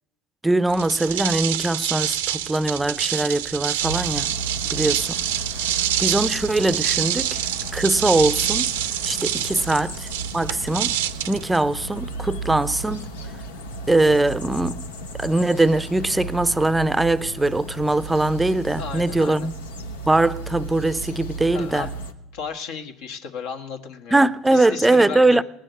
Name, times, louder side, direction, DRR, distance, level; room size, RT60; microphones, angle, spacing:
voice 1, 0.4-4.3 4.7-5.2 6.0-7.4 7.7-8.7 9.0-10.1 10.3-11.0 11.3-13.1 13.9-14.9 15.2-19.5 20.1-21.9 24.1-25.4, right 2 dB, 10° right, 0.5 m, -21 dB
sound 1, 0.7-12.2, right 11 dB, 85° right, 0.6 m, -26 dB
sound 2, 3.8-22.1, right 2 dB, 90° left, 0.8 m, -34 dB
voice 2, 18.8-19.5 21.5-21.9 22.3-25.4, left 6 dB, 70° left, 1.2 m, -34 dB
18.0 x 6.4 x 9.1 m
hypercardioid pair, 70°, 0 cm